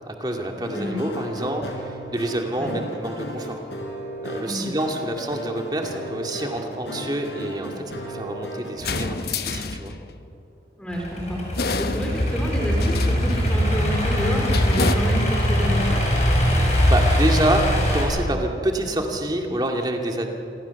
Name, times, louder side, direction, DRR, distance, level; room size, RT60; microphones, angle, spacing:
voice 1, 0.1-3.6 4.2-9.9 16.9-20.3, right 1 dB, 25° right, 2 dB, 2.3 m, -27 dB
sound 1, 0.6-9.0, equal, 80° left, 5.0 m, -35 dB
sound 2, 8.8-10.3 11.5-12.5 12.8-13.6 14.5-14.9, left 4 dB, 60° left, 1.1 m, -29 dB
voice 2, 10.8-11.4 11.8-16.0, equal, 5° left, 0 dB, 3.8 m, -29 dB
Idling / Accelerating revving vroom, 10.9-18.0, equal, 40° left, 6.8 m, -21 dB
28.0 x 22.5 x 7.1 m, 2.9 s
head